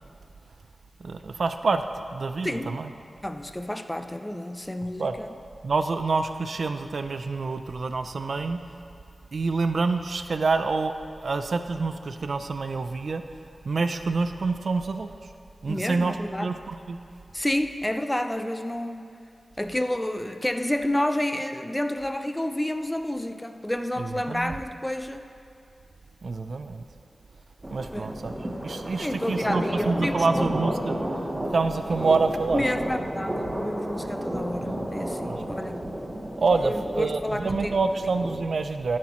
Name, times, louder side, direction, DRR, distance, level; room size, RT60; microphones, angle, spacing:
voice 1, 1.0-1.8 2.1-2.9 5.0-5.2 5.6-8.6 9.3-10.9 11.2-13.2 13.6-15.3 15.6-17.0 24.0-24.5 26.2-26.8 27.7-28.3 28.6-31.0 31.5-32.6 35.2-35.7 36.4-39.0, right 4 dB, 70° right, 8 dB, 0.4 m, -27 dB
voice 2, 3.2-5.3 15.7-16.5 17.3-19.1 19.6-25.2 27.9-28.2 29.0-30.5 32.5-35.9 36.6-37.8, left 1 dB, 15° left, 8 dB, 0.5 m, -29 dB
sound 1, 27.6-38.4, right 1 dB, 25° right, 1.0 m, -32 dB
13.0 x 7.4 x 3.0 m, 2.6 s
wide cardioid pair, 75°, 0 cm